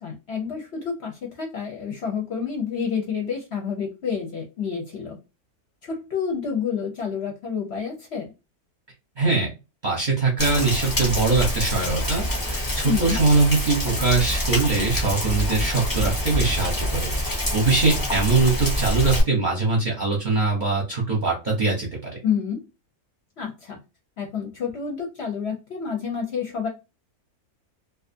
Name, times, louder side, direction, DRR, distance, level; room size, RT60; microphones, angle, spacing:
voice 1, 0.0-5.2 5.8-8.3 12.8-13.2 22.2-22.6 23.4-23.8 24.2-26.7, left 6 dB, 55° left, 0 dB, 0.8 m, -29 dB
voice 2, 9.2-9.5 9.8-22.1, right 3 dB, 45° right, -2 dB, 0.7 m, -22 dB
Rain, 10.4-19.2, left 1 dB, 25° left, 0.4 m, -26 dB
2.5 x 2.3 x 2.5 m, 0.26 s
omnidirectional pair, 1.6 m